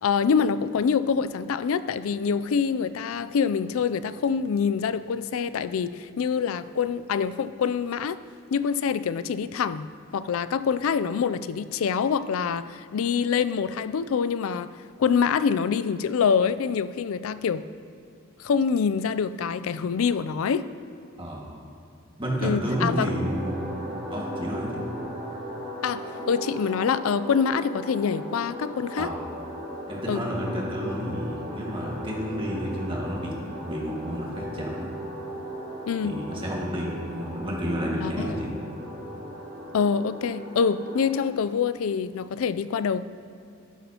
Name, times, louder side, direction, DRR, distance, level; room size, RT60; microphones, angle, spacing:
voice 1, 0.0-8.2 8.5-9.9 10.1-14.7 15.0-17.6 18.4-20.7 22.4-23.1 25.8-29.1 30.1-30.2 35.9-36.2 38.0-38.4 39.7-43.0, left 6 dB, 80° left, 15 dB, 0.4 m, -25 dB
voice 2, 21.2-21.5 22.2-23.7 24.1-24.7 29.0-29.3 29.9-33.3 33.7-34.9 36.0-38.5, equal, 25° right, -3 dB, 1.8 m, -30 dB
sound 1, 22.6-41.2, equal, 85° right, 2.7 m, -37 dB
13.0 x 11.5 x 2.9 m, 2.5 s
head